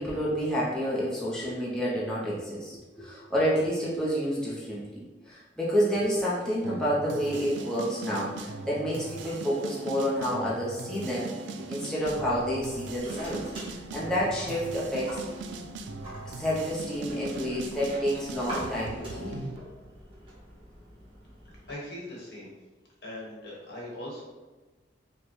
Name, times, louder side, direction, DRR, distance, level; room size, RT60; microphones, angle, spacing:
voice 1, 0.0-15.2 16.3-19.4, equal, 5° left, -7 dB, 0.6 m, -29 dB
sound 1, 6.6-19.6, right 3 dB, 90° right, 0.4 m, -40 dB
sound 2, 12.0-21.7, equal, 30° right, 1.3 m, -44 dB
voice 2, 21.7-22.5 23.0-24.2, left 1 dB, 65° left, -4 dB, 1.2 m, -40 dB
5.0 x 2.2 x 3.1 m, 1.3 s
head